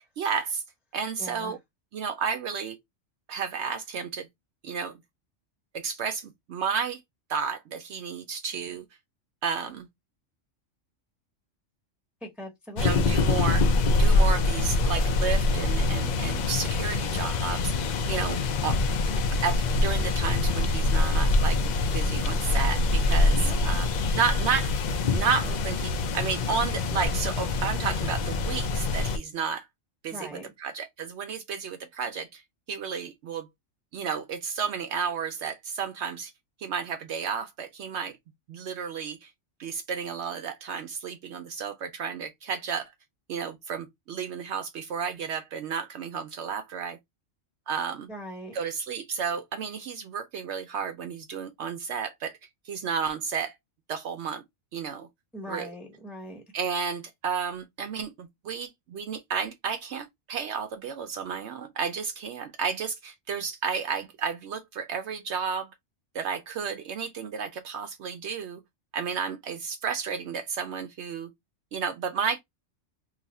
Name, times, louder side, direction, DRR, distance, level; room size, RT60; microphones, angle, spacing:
voice 1, 0.2-0.6 0.9-1.6 1.9-2.8 3.3-4.3 4.6-5.0 5.7-7.0 7.3-8.8 9.4-9.9 12.8-17.7 18.1-18.8 19.4-23.9 24.1-24.7 25.1-29.7 30.0-32.4 32.7-33.5 33.9-36.3 36.6-38.1 38.5-39.3 39.6-42.9 43.3-47.0 47.7-48.1 48.5-52.4 52.7-53.5 53.9-54.4 54.7-55.1 55.5-55.7 56.5-65.7 66.1-68.6 68.9-71.3 71.7-72.4, right 6 dB, 65° right, 0.8 m, -32 dB
voice 2, 1.2-1.5 12.2-13.1 23.4-23.7 30.1-30.4 48.1-48.5 55.3-56.4, equal, ahead, 0.9 m, -40 dB
sound 1, 12.8-29.2, left 2 dB, 80° left, 0.4 m, -25 dB
2.7 x 2.4 x 4.0 m
omnidirectional pair, 1.3 m